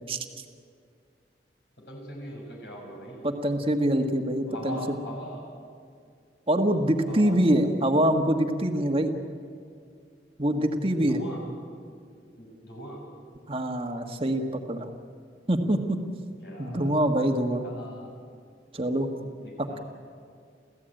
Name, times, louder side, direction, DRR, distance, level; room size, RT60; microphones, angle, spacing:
voice 1, 1.8-3.3 4.5-5.5 7.1-7.4 11.0-11.5 12.4-13.0 16.4-17.3 17.6-18.1 19.2-19.8, equal, 65° left, -1 dB, 6.6 m, -41 dB
voice 2, 3.2-4.8 6.5-9.1 10.4-11.2 13.5-14.9 15.5-16.0 16.6-17.6 18.7-19.1, right 1 dB, 30° right, 3 dB, 1.7 m, -24 dB
28.5 x 15.5 x 9.1 m, 2.2 s
head